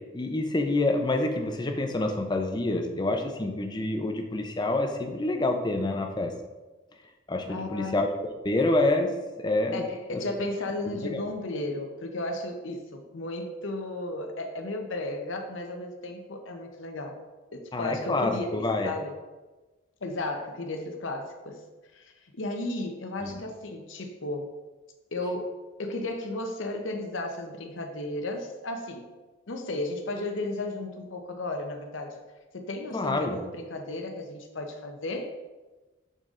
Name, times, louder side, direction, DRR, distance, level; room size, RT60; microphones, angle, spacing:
voice 1, 0.1-6.3 7.3-9.8 10.1-10.2 10.9-11.3 17.7-18.9 23.2-23.4 32.9-33.4, left 2 dB, 20° left, 4 dB, 0.5 m, -27 dB
voice 2, 7.5-8.0 9.7-17.2 17.5-19.1 20.0-21.6 21.9-24.5 25.1-29.1 29.5-32.2 32.5-35.3, left 2 dB, 70° left, 4 dB, 0.8 m, -34 dB
6.6 x 3.9 x 3.7 m, 1.2 s
head